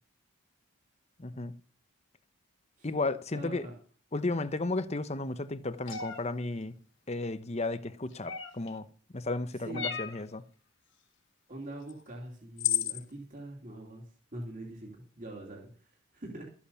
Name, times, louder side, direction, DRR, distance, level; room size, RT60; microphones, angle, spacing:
voice 1, 1.2-1.5 2.8-3.7 4.1-6.7 7.1-8.9 9.1-10.4, left 2 dB, 30° left, 0.9 m, -33 dB
voice 2, 3.3-3.7 9.6-9.9 11.5-14.1 14.3-16.5, right 1 dB, 35° right, 3.0 m, -43 dB
sound 1, 5.9-6.2 8.3-8.7 9.7-10.2 11.9-12.0 12.6-13.0, left 10 dB, 55° left, 2.0 m, -32 dB
13.5 x 8.6 x 7.0 m
head